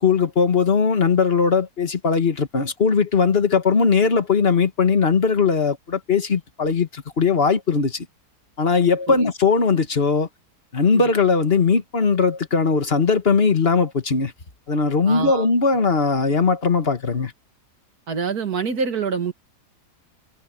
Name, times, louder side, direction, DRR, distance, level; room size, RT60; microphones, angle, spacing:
voice 1, 0.0-8.1 8.6-10.3 10.7-14.3 14.7-17.3, left 5 dB, 35° left, 1.9 m, -19 dB
voice 2, 15.1-15.5 18.1-19.3, right 5 dB, 65° right, 2.5 m, -26 dB
omnidirectional pair, 1.7 m